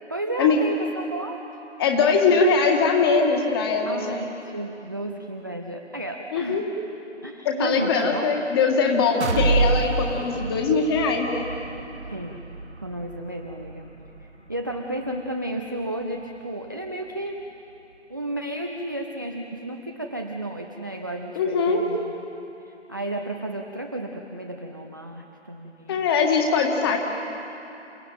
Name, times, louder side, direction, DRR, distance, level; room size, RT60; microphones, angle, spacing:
voice 1, 0.1-1.4 3.9-6.6 7.2-8.3 12.1-12.4 12.8-13.9 14.2-17.4 18.1-22.2 22.6-26.1, right 1 dB, 20° right, 3 dB, 0.5 m, -33 dB
voice 2, 1.8-4.2 6.3-6.6 7.5-11.5 21.4-21.8 25.9-27.0, left 4 dB, 20° left, 2 dB, 2.0 m, -21 dB
sound 1, 9.2-17.0 17.4-17.5 17.9-18.0, right 3 dB, 65° right, 2.4 m, -29 dB
28.5 x 17.5 x 9.1 m, 3.0 s
figure-of-eight pair, 150°, 36 cm